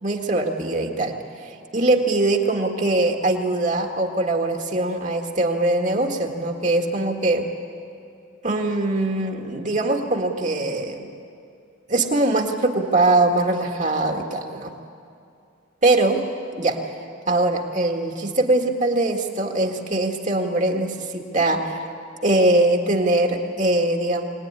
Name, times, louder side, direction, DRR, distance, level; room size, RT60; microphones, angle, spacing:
voice 1, 0.0-7.5 8.4-11.1 11.9-14.7 15.8-16.2 16.6-17.0 17.3-21.9 22.2-24.2, right 2 dB, 40° right, 2 dB, 1.9 m, -22 dB
23.5 x 19.0 x 9.8 m, 2.5 s
head